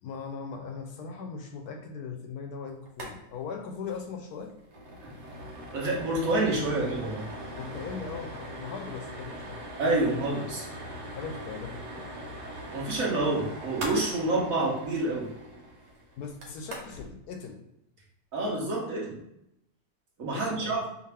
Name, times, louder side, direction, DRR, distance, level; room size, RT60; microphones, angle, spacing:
voice 1, 0.0-4.5 7.5-9.6 11.1-12.1 16.2-17.6 20.3-20.8, left 5 dB, 70° left, 4 dB, 1.1 m, -39 dB
sound 1, 2.9-3.1 3.4-3.5 3.8-4.0 4.4-17.1, right 1 dB, 80° right, 1.6 m, -41 dB
voice 2, 5.7-7.3 9.8-10.7 12.7-15.3 18.3-19.2 20.2-20.8, right 2 dB, 55° right, -3 dB, 1.3 m, -28 dB
4.9 x 2.6 x 3.4 m, 0.79 s
omnidirectional pair, 1.8 m